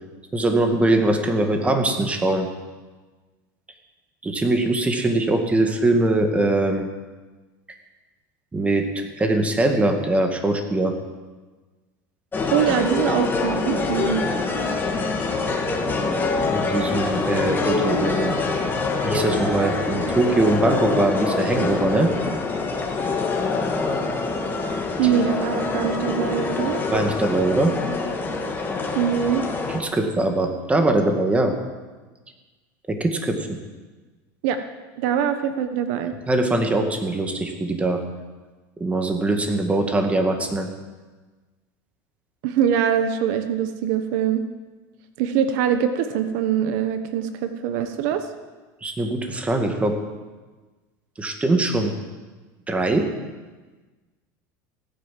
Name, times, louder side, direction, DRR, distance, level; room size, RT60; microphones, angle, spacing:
voice 1, 0.3-2.5 4.2-6.9 8.5-10.9 16.5-18.3 19.0-22.1 26.9-27.7 29.7-31.5 32.9-33.6 36.3-38.0 38.8-40.7 48.8-50.0 51.2-52.0 52.7-53.1, right 2 dB, 15° right, 5 dB, 1.9 m, -22 dB
sound 1, 12.3-29.8, left 3 dB, 20° left, 2.3 m, -25 dB
voice 2, 12.5-14.3 25.0-26.8 28.9-29.5 34.4-34.6 35.0-36.1 42.4-44.4 45.2-48.3, right 9 dB, 75° right, 9 dB, 1.2 m, -23 dB
16.5 x 9.8 x 7.6 m, 1.3 s
supercardioid pair, 130°, 10 cm